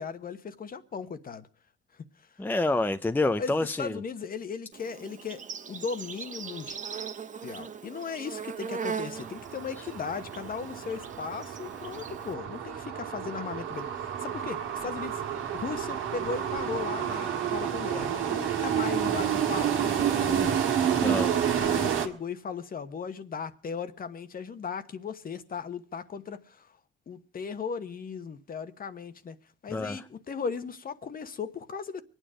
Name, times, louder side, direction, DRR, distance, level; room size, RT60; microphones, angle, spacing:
voice 1, 0.0-1.5 3.4-3.5 3.8-5.4 5.7-6.8 7.4-15.2 15.5-20.6 21.0-26.7 27.1-29.4 29.6-32.0, left 5 dB, 45° left, 1.2 m, -37 dB
voice 2, 2.4-4.0 20.9-21.3 29.7-30.0, left 2 dB, 10° left, 0.6 m, -28 dB
Insect, 4.7-12.3, right 6 dB, 40° right, 1.0 m, -40 dB
sound 1, 9.2-22.1, right 9 dB, 90° right, 1.8 m, -29 dB
24.0 x 9.2 x 5.0 m
cardioid pair, 90°, 20 cm